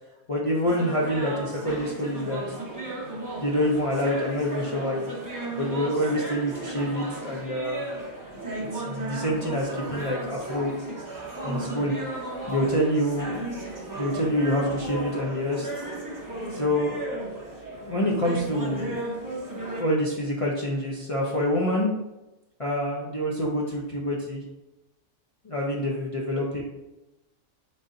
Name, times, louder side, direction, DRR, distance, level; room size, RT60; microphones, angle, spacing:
voice 1, 0.3-2.4 3.0-5.0 5.5-7.8 8.3-10.7 11.4-11.9 12.5-13.3 14.0-15.7 16.5-17.0 17.8-19.0 19.8-21.9 22.6-24.4 25.4-26.6, equal, 45° left, -4 dB, 0.4 m, -27 dB
sound 1, 0.7-19.8, right 2 dB, 20° right, 0.6 m, -35 dB
4.0 x 3.5 x 3.8 m, 0.99 s
omnidirectional pair, 1.5 m